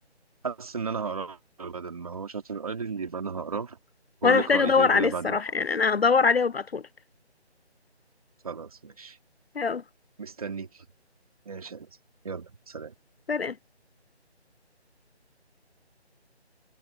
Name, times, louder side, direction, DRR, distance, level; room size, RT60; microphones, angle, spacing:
voice 1, 0.4-3.8 4.2-5.4 8.4-9.2 10.2-10.7 11.5-11.9 12.2-12.9, right 5 dB, 35° right, 2.5 m, -34 dB
voice 2, 4.2-6.8 9.6-9.8 13.3-13.5, left 5 dB, 60° left, 0.6 m, -23 dB
figure-of-eight pair, 170°, 34 cm